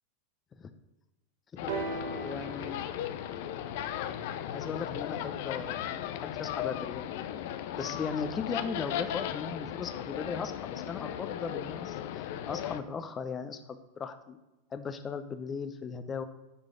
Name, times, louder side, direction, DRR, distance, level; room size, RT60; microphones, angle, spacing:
sound 1, 1.6-12.8, left 11 dB, 60° left, 0.6 m, -36 dB
sound 2, 1.7-5.5 6.4-6.5, right 4 dB, 70° right, 3.1 m, -41 dB
voice 1, 2.1-2.8 4.5-7.5 7.8-14.4 14.7-16.2, left 5 dB, 25° left, 9 dB, 0.8 m, -38 dB
9.9 x 5.1 x 5.6 m, 1.0 s
hypercardioid pair, 105°, 0 cm